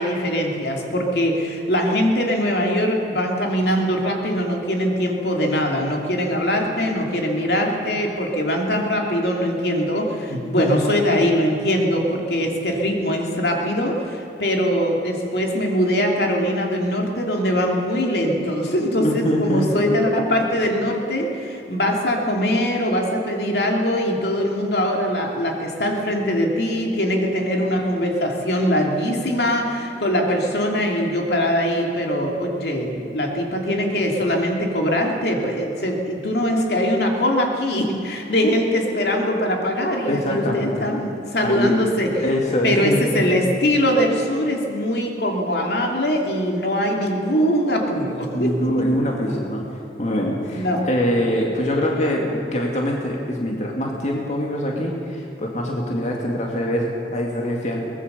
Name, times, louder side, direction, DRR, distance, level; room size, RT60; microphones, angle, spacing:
voice 1, 0.0-42.2 42.6-48.9 50.5-50.9, equal, 65° left, 1 dB, 2.8 m, -22 dB
voice 2, 10.3-11.0 19.0-19.7 40.1-40.9 41.4-41.8 42.2-43.2 48.3-57.8, equal, 40° left, -1 dB, 2.3 m, -24 dB
23.0 x 19.5 x 6.8 m, 2.8 s
head